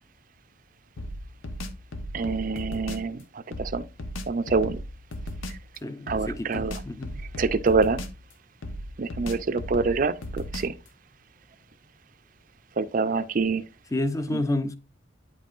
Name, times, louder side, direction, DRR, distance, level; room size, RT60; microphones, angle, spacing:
sound 1, 1.0-3.1 3.5-5.7 6.1-8.3 8.6-10.9, equal, 85° left, 0.9 m, -36 dB
voice 1, 2.1-3.2 3.6-3.8 4.3-4.8 6.1-6.8 7.4-8.0 9.0-10.7 12.8-13.6 14.3-14.4, right 4 dB, 45° right, 0.4 m, -25 dB
voice 2, 5.8-7.2 13.9-14.8, left 1 dB, 15° left, 0.4 m, -29 dB
9.3 x 5.4 x 2.5 m
head